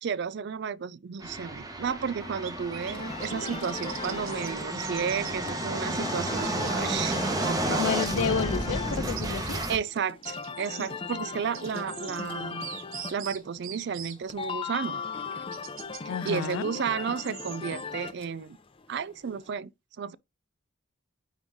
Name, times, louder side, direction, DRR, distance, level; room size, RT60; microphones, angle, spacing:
voice 1, 0.0-7.9 9.7-12.7 13.1-15.0 16.2-18.6 18.9-19.7 20.0-20.2, right 7 dB, 55° right, 0.4 m, -32 dB
sound 1, 1.2-9.8, right 1 dB, 20° right, 1.1 m, -31 dB
sound 2, 2.4-2.9 3.2-5.3 6.4-6.8 7.1-8.1 8.9-9.8 10.2-10.9 11.5-12.2 12.6-14.1 15.1-16.0 16.3-17.8, right 10 dB, 75° right, 1.1 m, -42 dB
sound 3, 2.8-19.5, left 4 dB, 25° left, 0.6 m, -38 dB
voice 2, 7.7-9.6 16.1-16.7, left 7 dB, 80° left, 0.4 m, -30 dB
9.2 x 3.1 x 3.5 m
head